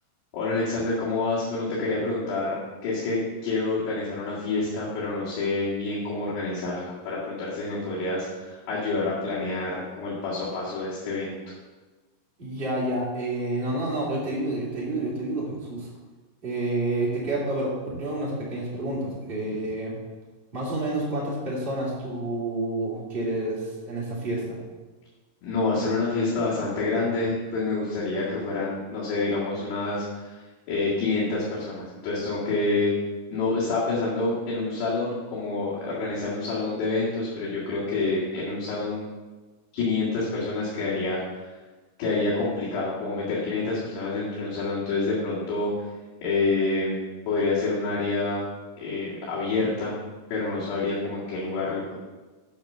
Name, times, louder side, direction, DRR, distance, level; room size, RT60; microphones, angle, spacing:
voice 1, 0.3-11.5 25.4-32.9 33.3-39.0 39.7-41.4 42.0-45.9 46.2-47.0 47.3-48.4 48.8-49.9 50.3-51.9, left 3 dB, 85° left, -9 dB, 4.1 m, -27 dB
voice 2, 12.4-15.9 16.4-19.9 20.5-24.6, right 2 dB, 15° right, -6 dB, 2.5 m, -29 dB
8.6 x 6.1 x 6.6 m, 1.3 s
omnidirectional pair, 4.6 m